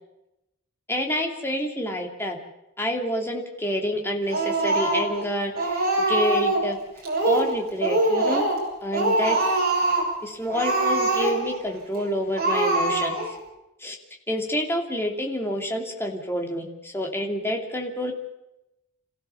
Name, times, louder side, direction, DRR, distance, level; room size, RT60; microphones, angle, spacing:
voice 1, 0.9-2.4 2.8-6.8 7.2-8.5 8.8-9.6 10.2-13.1 13.8-14.0 14.3-18.1, equal, 10° left, 2 dB, 2.7 m, -28 dB
Speech, 4.3-5.2 5.6-6.7 7.0-7.5 7.8-8.7 8.9-10.1 10.5-11.6 11.9-12.0 12.4-13.4, right 2 dB, 45° right, 6.7 m, -23 dB
27.5 x 15.0 x 7.0 m, 0.91 s
head